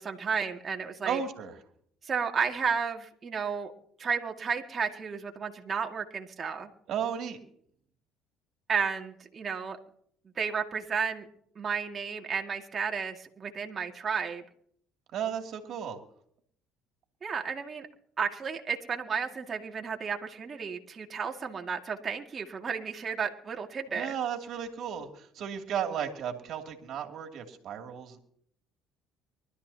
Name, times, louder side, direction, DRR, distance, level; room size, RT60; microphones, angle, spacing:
voice 1, 0.0-1.2 2.0-3.7 4.0-6.7 8.7-9.8 10.4-11.3 11.6-14.4 17.2-17.9 18.2-24.2, right 6 dB, 40° right, 3 dB, 2.1 m, -32 dB
voice 2, 1.0-1.6 6.9-7.4 15.1-16.0 23.9-28.2, right 8 dB, 60° right, 3 dB, 2.7 m, -34 dB
24.0 x 13.0 x 2.9 m, 0.64 s
supercardioid pair, 75°, 0 cm